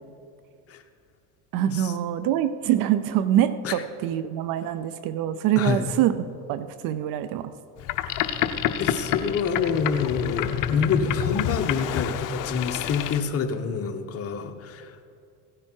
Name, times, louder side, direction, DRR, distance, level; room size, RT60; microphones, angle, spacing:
voice 1, 1.5-6.2 6.5-7.5, right 11 dB, 55° right, 13 dB, 0.7 m, -24 dB
voice 2, 5.6-5.9 7.8-7.9 8.8-15.0, left 6 dB, 35° left, 6 dB, 1.2 m, -27 dB
Boat Water vehicle, 7.8-13.2, left 10 dB, 50° left, 0.8 m, -28 dB
16.0 x 9.8 x 4.6 m, 2.4 s
supercardioid pair, 105°, 40 cm